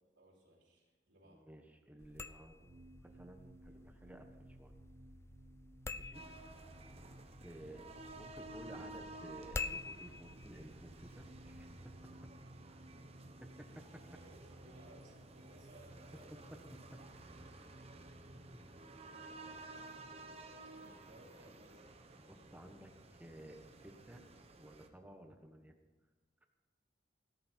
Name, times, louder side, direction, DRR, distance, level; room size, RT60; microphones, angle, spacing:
voice 1, 0.1-1.5 5.9-6.4 13.0-13.3 13.8-13.9 14.2-16.3 17.4-17.5 19.2-21.8, right 1 dB, 75° right, -3 dB, 3.8 m, -63 dB
voice 2, 1.2-4.8 5.9-6.2 7.4-12.2 13.6-13.7 16.9-17.0 22.3-24.2 24.6-25.7, right 1 dB, 10° right, 5 dB, 1.3 m, -55 dB
sound 1, 2.0-11.8, left 3 dB, 15° left, 0.4 m, -49 dB
sound 2, 2.6-18.8, right 1 dB, 55° right, 1.0 m, -59 dB
sound 3, 6.1-24.9, right 2 dB, 35° right, 1.2 m, -54 dB
16.5 x 13.0 x 4.5 m, 1.2 s
head